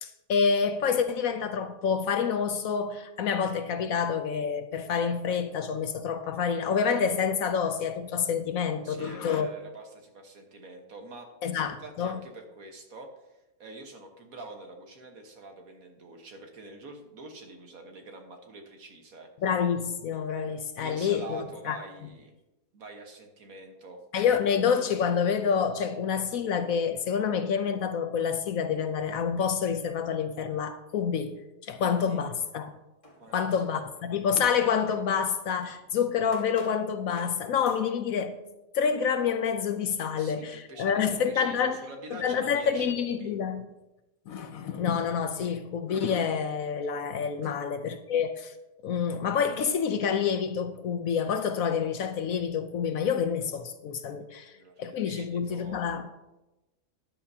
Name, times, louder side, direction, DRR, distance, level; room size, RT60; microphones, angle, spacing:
voice 1, 0.0-9.5 11.4-12.2 19.4-21.8 24.1-32.7 33.3-38.4 38.7-41.8 42.2-43.6 44.3-48.5 48.8-54.5 54.8-56.1, left 7 dB, 65° left, 1.0 m, -28 dB
voice 2, 8.8-11.3 11.6-19.3 20.8-22.3 22.7-24.0 31.8-32.2 33.1-33.6 40.1-43.3 47.4-47.6 54.3-55.8, right 2 dB, 60° right, 1.7 m, -46 dB
sound 1, 31.9-32.7 33.0-35.8 36.3-36.8 37.2-37.4 37.7-37.9, left 2 dB, 20° left, 2.0 m, -52 dB
13.5 x 10.5 x 2.8 m
omnidirectional pair, 1.7 m